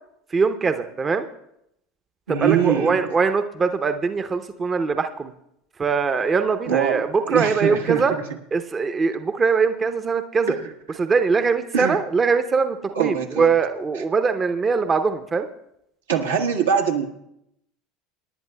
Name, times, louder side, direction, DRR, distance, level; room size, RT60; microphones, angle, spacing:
voice 1, 0.3-1.3 2.3-5.3 5.8-8.1 8.5-10.5 11.0-15.5, right 5 dB, 25° right, 9 dB, 0.7 m, -22 dB
voice 2, 2.3-3.1 6.7-8.0 10.5-10.6 11.7-12.0 12.9-13.5 16.1-17.0, right 7 dB, 80° right, 1 dB, 1.4 m, -23 dB
27.0 x 11.0 x 2.3 m, 0.79 s
figure-of-eight pair, 75°, 0 cm